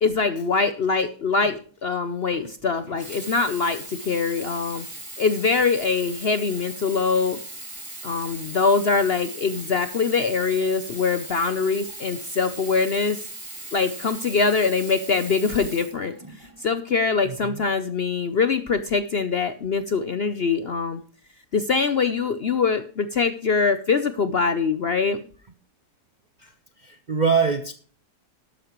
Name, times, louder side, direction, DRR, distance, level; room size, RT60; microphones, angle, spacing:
voice 1, 0.0-4.9 5.2-7.4 8.0-13.2 13.7-16.2 16.6-21.0 21.5-25.2, left 4 dB, 55° left, 0.7 m, -23 dB
Sink (filling or washing), 2.9-16.6 17.4-17.5, right 2 dB, 20° right, 2.0 m, -39 dB
voice 2, 17.2-17.6 26.4-26.5 26.8-27.7, right 5 dB, 40° right, 0.6 m, -24 dB
12.5 x 12.0 x 3.1 m
omnidirectional pair, 1.7 m